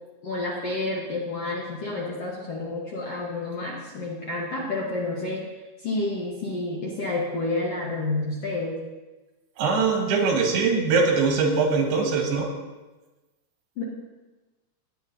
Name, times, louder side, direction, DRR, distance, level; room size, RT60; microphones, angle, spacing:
voice 1, 0.2-5.4 5.8-8.7 13.8-13.9, left 2 dB, 60° left, -4 dB, 1.7 m, -29 dB
voice 2, 9.6-12.5, right 4 dB, 85° right, 1 dB, 3.7 m, -22 dB
18.0 x 8.8 x 2.7 m, 1.1 s
omnidirectional pair, 4.5 m